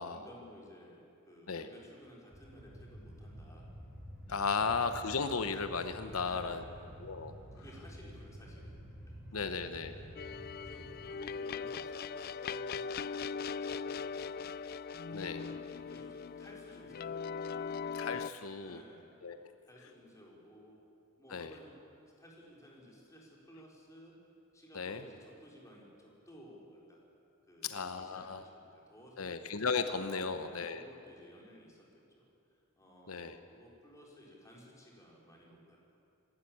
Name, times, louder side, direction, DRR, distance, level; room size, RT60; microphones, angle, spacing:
voice 1, 0.0-3.7 6.1-6.9 7.5-8.8 9.5-14.5 15.0-17.8 18.6-19.2 19.6-20.8 21.2-21.7 22.2-24.2 24.5-27.0 27.5-29.4 30.1-32.3 32.8-35.8, equal, 15° left, -3 dB, 4.3 m, -56 dB
sound 1, 2.3-11.1, equal, 5° right, 3.7 m, -50 dB
voice 2, 4.3-6.6 7.0-7.3 9.3-9.9 15.1-15.5 18.0-18.8 19.2-19.4 21.3-21.5 24.7-25.0 27.6-28.4 29.2-30.8 33.1-33.4, left 5 dB, 90° left, 9 dB, 0.9 m, -35 dB
sound 2, 10.2-18.3, left 5 dB, 45° left, 0.4 m, -40 dB
26.5 x 12.5 x 8.6 m, 2.6 s
head